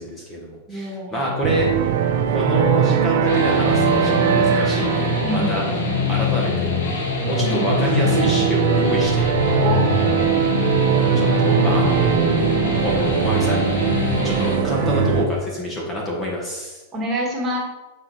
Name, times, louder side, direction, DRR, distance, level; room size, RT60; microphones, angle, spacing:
voice 1, 0.0-1.7 2.3-5.6 6.1-6.8 7.2-9.3 11.2-12.4 12.8-13.8 14.2-16.8, left 1 dB, 20° left, -2 dB, 1.6 m, -26 dB
voice 2, 0.7-1.3 5.2-5.5 7.4-7.7 9.6-9.9 16.9-17.6, right 1 dB, 15° right, -3 dB, 1.7 m, -26 dB
sound 1, 1.4-15.3, right 8 dB, 65° right, 0.7 m, -21 dB
sound 2, 3.3-14.6, left 4 dB, 85° left, 1.9 m, -24 dB
8.2 x 5.0 x 4.2 m, 1.1 s
supercardioid pair, 150°, 0 cm